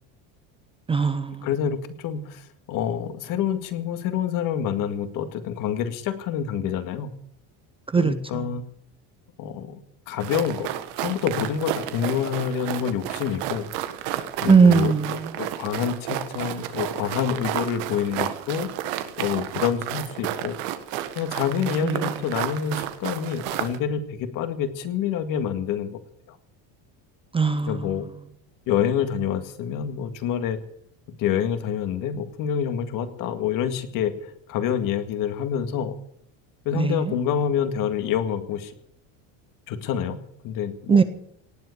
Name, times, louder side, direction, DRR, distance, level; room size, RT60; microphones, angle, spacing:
voice 1, 0.9-1.5 7.9-8.5 14.5-15.3 21.8-22.1 27.3-27.9 36.7-37.2 40.9-41.0, right 5 dB, 15° right, 11 dB, 0.6 m, -20 dB
voice 2, 1.4-7.1 8.0-8.6 9.4-9.8 10.1-10.7 11.0-13.7 14.4-18.7 19.2-20.6 21.2-26.0 26.3-26.4 27.7-28.1 28.7-30.6 31.2-35.9 36.7-38.7 39.7-40.2 40.4-41.0, left 8 dB, 55° left, 9 dB, 2.0 m, -27 dB
sound 1, 10.2-23.8, right 12 dB, 80° right, 1.7 m, -31 dB
18.5 x 7.7 x 9.5 m, 0.70 s
cardioid pair, 145°, 39 cm